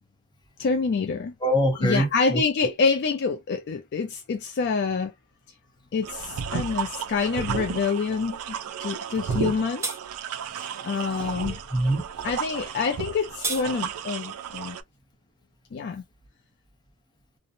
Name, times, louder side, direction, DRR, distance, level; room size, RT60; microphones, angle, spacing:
voice 1, 0.6-1.3 1.8-5.1 5.9-9.9 10.8-11.6 12.2-14.8 15.7-16.0, left 5 dB, 50° left, 0.3 m, -27 dB
voice 2, 1.4-2.7 10.5-10.9 11.7-12.3, equal, 20° left, 0.8 m, -25 dB
sound 1, 6.0-14.8, right 7 dB, 85° right, 0.4 m, -33 dB
sound 2, 9.3-9.5 9.8-10.0 13.0-13.6, right 3 dB, 15° right, 0.5 m, -31 dB
2.7 x 2.0 x 2.5 m
head